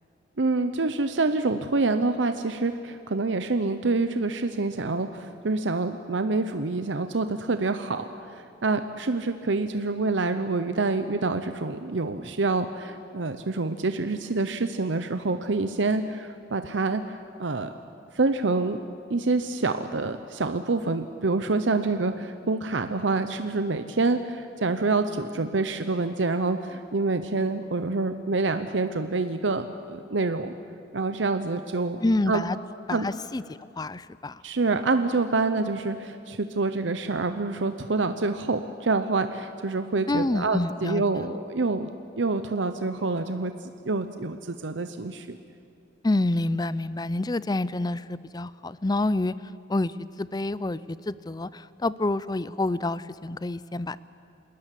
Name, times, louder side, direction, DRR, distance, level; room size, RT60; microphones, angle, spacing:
voice 1, 0.4-17.7 18.1-18.8 19.1-30.5 30.9-32.4 32.9-33.0 34.4-41.9 42.2-43.5 43.8-45.4, right 3 dB, 75° right, 9 dB, 0.8 m, -27 dB
voice 2, 32.0-32.6 32.9-33.4 33.8-34.4 40.1-41.3 46.0-49.3 49.7-54.0, left 2 dB, 20° left, 17 dB, 0.5 m, -28 dB
28.0 x 13.5 x 10.0 m, 2.4 s
head